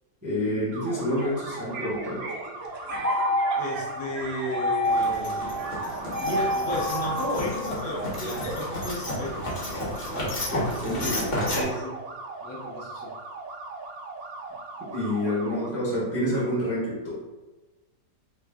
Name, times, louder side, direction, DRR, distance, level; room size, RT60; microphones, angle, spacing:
voice 1, 0.2-2.2 10.5-11.2 14.9-17.2, equal, 20° right, -7 dB, 0.5 m, -28 dB
sound 1, 0.7-15.7, right 3 dB, 70° right, 0.9 m, -39 dB
sound 2, 1.2-8.7, equal, 90° right, 0.5 m, -29 dB
voice 2, 3.6-9.5 10.1-10.4 11.5-12.0 12.4-13.1, left 1 dB, 70° left, -3 dB, 1.3 m, -34 dB
sound 3, 4.8-11.6, left 1 dB, 40° left, 1.0 m, -32 dB
3.2 x 2.5 x 3.5 m, 1.2 s
omnidirectional pair, 1.8 m